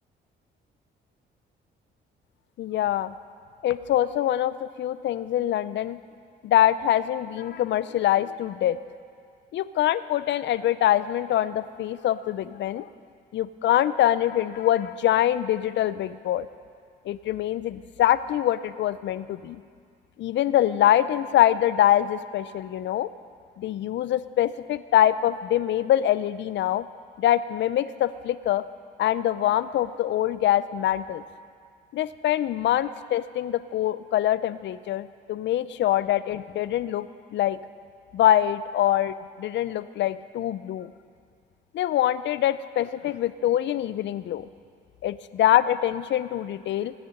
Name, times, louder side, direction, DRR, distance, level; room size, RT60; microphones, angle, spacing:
voice 1, 2.6-3.1 3.6-6.0 6.4-8.8 9.5-12.9 13.3-16.5 17.1-19.6 20.2-23.1 23.6-26.9 27.2-28.6 29.0-31.2 31.9-37.6 38.1-40.9 41.7-44.5 45.0-46.9, left 12 dB, 65° left, 15 dB, 0.5 m, -24 dB
16.5 x 9.5 x 5.4 m, 2.2 s
cardioid pair, 90°, 20 cm